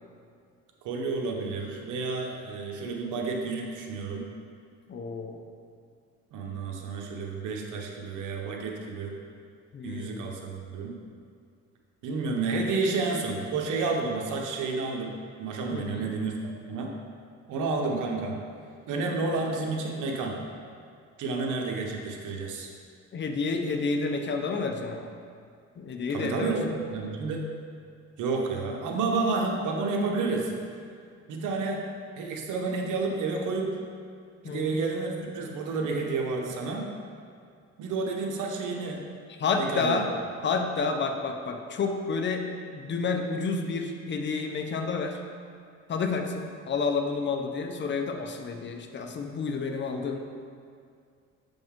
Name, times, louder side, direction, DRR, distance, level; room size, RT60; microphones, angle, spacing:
voice 1, 0.8-4.2 6.3-9.1 9.8-11.0 12.0-16.3 16.7-16.9 17.5-18.4 18.9-20.4 21.2-22.7 26.1-27.4 28.2-30.5 31.3-31.8 32.2-33.7 34.4-36.9 37.8-39.0 39.6-40.0, right 3 dB, 85° right, 1 dB, 0.9 m, -30 dB
voice 2, 4.9-5.4 9.7-10.3 15.7-16.1 23.1-25.1 25.8-26.6 34.4-34.8 39.3-40.1 40.4-42.5 42.7-45.2 45.9-50.2, left 4 dB, 40° left, 4 dB, 0.7 m, -30 dB
7.1 x 5.3 x 3.6 m, 2.2 s
cardioid pair, 90°, 30 cm